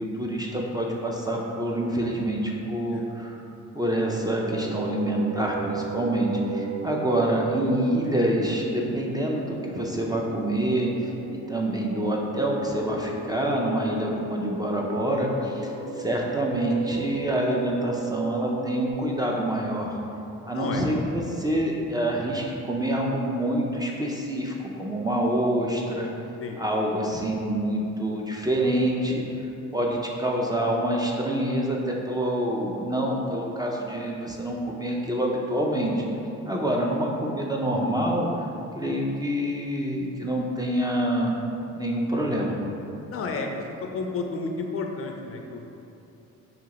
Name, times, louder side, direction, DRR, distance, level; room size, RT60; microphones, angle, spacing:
voice 1, 0.0-3.4 3.7-20.0 20.4-26.1 26.6-29.2 29.7-36.0 36.5-38.3 38.7-41.3 41.7-42.6, right 1 dB, 15° right, -2 dB, 0.4 m, -26 dB
sound 1, 3.9-18.9, right 4 dB, 60° right, 0.6 m, -35 dB
voice 2, 43.1-43.6 43.9-45.6, left 4 dB, 50° left, 2 dB, 0.5 m, -31 dB
5.0 x 2.8 x 2.9 m, 2.8 s
cardioid pair, 90°, 30 cm